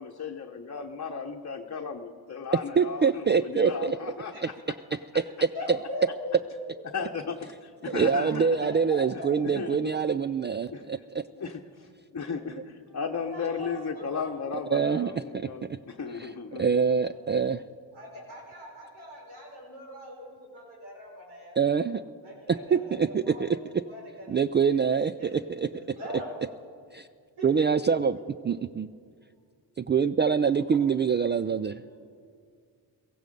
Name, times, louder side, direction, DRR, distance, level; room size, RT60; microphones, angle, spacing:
voice 1, 0.0-4.5 6.8-8.6 9.5-9.9 10.7-10.9 11.3-16.7, left 5 dB, 35° left, 2 dB, 1.0 m, -35 dB
voice 2, 2.8-4.0 4.4-4.5 5.1-5.8 7.9-11.2 14.7-15.8 16.2-17.6 21.6-22.0 22.5-23.8 24.3-26.0 26.9-27.1 27.4-28.2 28.4-28.9 29.8-31.8, right 6 dB, 25° right, 13 dB, 0.3 m, -25 dB
voice 3, 5.2-6.4 8.1-9.6 12.9-14.3 17.1-17.3 17.9-21.9 22.2-23.6 23.8-24.8 25.2-26.5 27.4-28.2 31.8-32.0, left 1 dB, 85° right, -2 dB, 4.7 m, -42 dB
16.5 x 14.5 x 5.3 m, 2.1 s
supercardioid pair, 45°, 46 cm